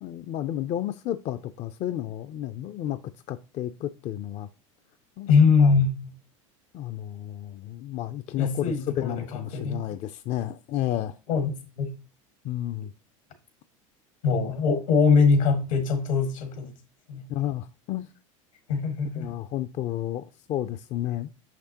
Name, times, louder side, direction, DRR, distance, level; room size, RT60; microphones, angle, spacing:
voice 1, 0.0-3.0 3.3-4.5 5.2-5.3 5.6-5.7 6.7-8.7 9.0-11.1 12.4-12.9 17.3-18.1 19.2-20.2 20.5-21.3, left 12 dB, 45° left, 0.4 m, -31 dB
voice 2, 5.3-6.1 8.4-9.8 11.3-11.9 14.2-16.7 17.1-17.2 18.7-19.3, left 5 dB, 80° left, 1.7 m, -22 dB
6.2 x 5.9 x 2.8 m
hypercardioid pair, 90°, 17 cm